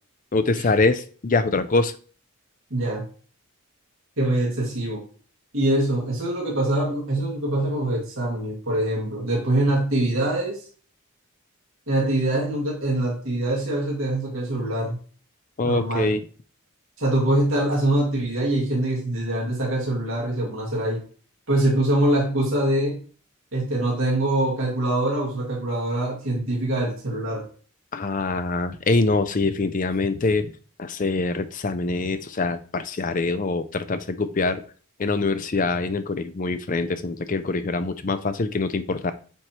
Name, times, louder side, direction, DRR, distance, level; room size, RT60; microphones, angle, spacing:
voice 1, 0.3-2.0 15.6-16.2 27.9-30.5 30.8-34.6 35.0-39.1, left 3 dB, 35° left, 11 dB, 0.5 m, -24 dB
voice 2, 2.7-3.0 4.2-5.0 5.5-10.6 11.9-15.0 15.6-16.1 17.0-21.0 21.5-23.0 23.5-27.5, right 1 dB, 60° right, -3 dB, 2.1 m, -24 dB
7.9 x 4.4 x 3.0 m, 0.41 s
head